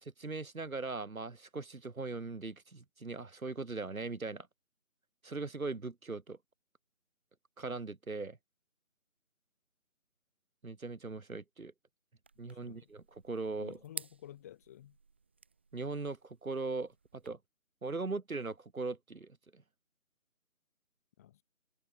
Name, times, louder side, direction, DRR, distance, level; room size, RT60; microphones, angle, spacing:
voice 1, 0.0-4.5 5.2-6.4 7.6-8.4 10.6-11.7 12.4-13.8 15.7-17.4 17.8-19.6, right 3 dB, 85° right, 2.8 m, -40 dB
sound 1, 12.2-17.3, right 5 dB, 10° right, 1.0 m, -52 dB
voice 2, 12.5-12.9 13.6-15.0 21.2-21.4, left 12 dB, 10° left, 1.6 m, -52 dB
figure-of-eight pair, 165°, 40 cm